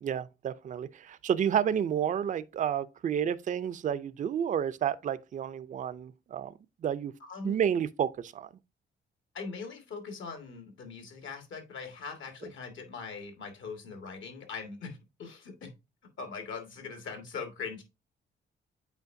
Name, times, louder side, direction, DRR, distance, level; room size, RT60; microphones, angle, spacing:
voice 1, 0.0-6.5 6.8-7.1 7.4-8.5, right 9 dB, 40° right, 0.4 m, -30 dB
voice 2, 7.2-7.8 9.3-15.7 16.2-17.8, left 5 dB, 75° left, 1.8 m, -41 dB
8.0 x 4.5 x 2.6 m
cardioid pair, 125°, 20 cm